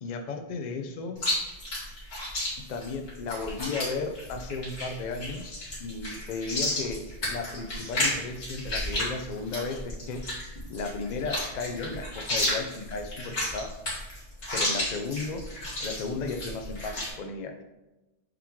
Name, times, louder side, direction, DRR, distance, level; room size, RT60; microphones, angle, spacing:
voice 1, 0.0-1.2 2.7-7.0 7.3-10.2 10.7-13.7 14.5-15.4 15.8-17.6, left 4 dB, 50° left, 5 dB, 0.6 m, -34 dB
Chewing mastication, 1.2-17.1, left 1 dB, 70° left, 2.5 m, -32 dB
8.6 x 3.1 x 3.6 m, 1.0 s
omnidirectional pair, 1.2 m